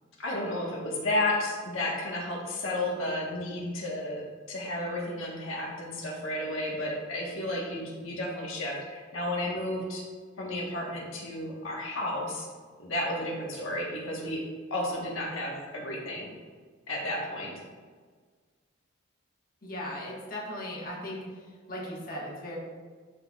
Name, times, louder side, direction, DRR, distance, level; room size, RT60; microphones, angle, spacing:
voice 1, 0.2-10.0 10.4-12.5 12.8-14.4 14.7-16.3 16.9-17.5, left 1 dB, 80° left, -3 dB, 1.3 m, -32 dB
voice 2, 19.6-21.2 21.7-22.6, left 1 dB, 40° left, -4 dB, 1.4 m, -37 dB
11.5 x 4.4 x 2.4 m, 1.5 s
head